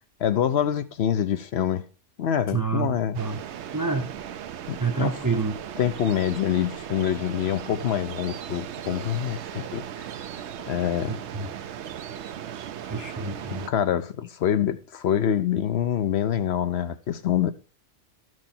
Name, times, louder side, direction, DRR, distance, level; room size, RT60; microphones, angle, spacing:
voice 1, 0.2-1.8 2.2-3.2 4.7-5.2 5.8-10.1 10.7-11.1 13.7-17.5, left 9 dB, 65° left, 0.9 m, -25 dB
voice 2, 2.5-2.9 3.2-3.4 3.7-4.1 4.8-5.5 11.1-11.5 12.9-13.7, right 4 dB, 20° right, 0.6 m, -27 dB
sound 1, 3.1-13.7, right 9 dB, 70° right, 0.9 m, -37 dB
12.5 x 6.2 x 4.3 m
omnidirectional pair, 1.2 m